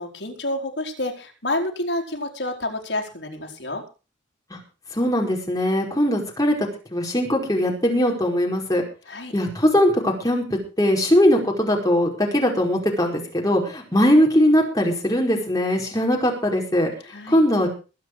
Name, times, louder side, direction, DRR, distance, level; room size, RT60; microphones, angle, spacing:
voice 1, 0.0-3.8 9.1-9.3 17.0-17.4, left 1 dB, 65° left, 3 dB, 4.4 m, -29 dB
voice 2, 4.9-8.8 9.3-16.9 17.3-17.7, equal, 20° left, 0 dB, 5.1 m, -20 dB
22.0 x 9.1 x 4.8 m, 0.34 s
head